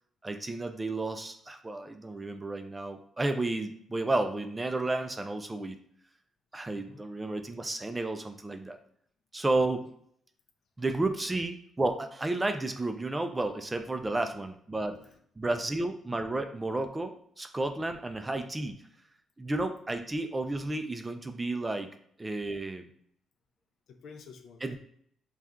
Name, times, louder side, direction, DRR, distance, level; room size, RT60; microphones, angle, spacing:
voice 1, 0.2-5.8 6.5-8.8 9.3-9.9 10.8-15.0 15.4-18.8 19.4-21.9 22.2-22.9 24.6-24.8, right 2 dB, 20° right, 7 dB, 0.4 m, -32 dB
voice 2, 6.7-7.0 9.8-9.9 14.1-14.3 14.7-15.5 23.9-24.8, left 5 dB, 70° left, 5 dB, 0.5 m, -52 dB
2.7 x 2.3 x 3.5 m, 0.65 s
cardioid pair, 90°, 0 cm